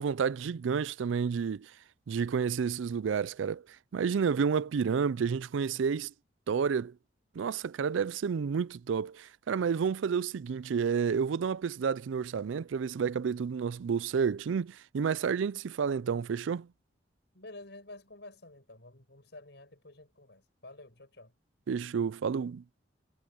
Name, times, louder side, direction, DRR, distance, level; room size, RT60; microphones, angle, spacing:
voice 1, 0.0-1.7 2.1-3.6 3.9-6.1 6.5-6.9 7.4-16.7 21.7-22.6, right 6 dB, 85° right, 0.4 m, -30 dB
voice 2, 17.3-21.3, left 2 dB, 65° left, 5.7 m, -50 dB
head